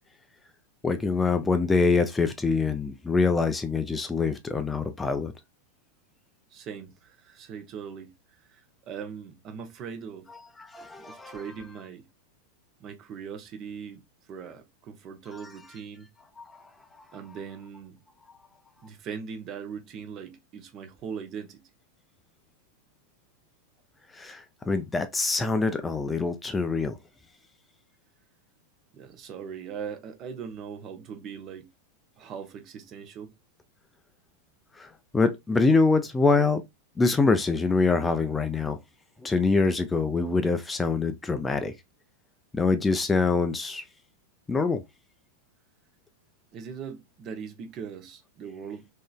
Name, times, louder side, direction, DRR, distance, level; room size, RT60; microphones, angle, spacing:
voice 1, 0.8-5.3 10.6-11.4 16.4-16.5 24.1-27.0 34.8-34.9 35.1-36.6 37.0-38.8 39.2-41.7 42.5-43.8 44.5-44.8, left 4 dB, 10° left, 0.4 m, -24 dB
voice 2, 6.5-8.1 8.5-8.6 8.9-10.3 11.0-12.0 12.8-14.0 14.3-16.1 17.1-18.0 18.8-21.6 28.9-31.7 32.2-33.3 46.5-48.9, right 7 dB, 35° right, 0.8 m, -40 dB
3.7 x 3.0 x 2.2 m
figure-of-eight pair, 90°, 0 cm